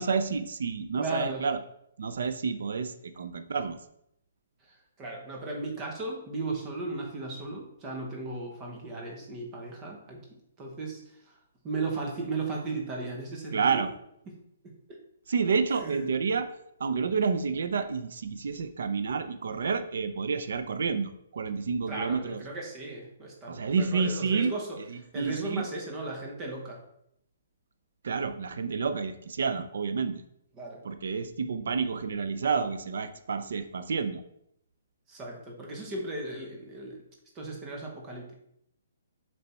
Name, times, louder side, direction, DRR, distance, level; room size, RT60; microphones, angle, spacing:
voice 1, 0.0-1.6 2.0-3.8 13.5-13.9 15.3-16.5 16.8-22.4 23.5-24.5 24.8-25.6 28.0-30.2 30.8-34.2, right 5 dB, 60° right, 10 dB, 0.5 m, -29 dB
voice 2, 1.0-1.4 4.7-10.2 10.6-11.0 11.6-13.8 14.6-15.0 15.8-16.0 21.9-26.8 30.5-30.8 35.1-37.0 37.3-38.3, right 3 dB, 15° right, 0 dB, 0.9 m, -36 dB
6.8 x 3.4 x 4.3 m, 0.75 s
hypercardioid pair, 180°, 0 cm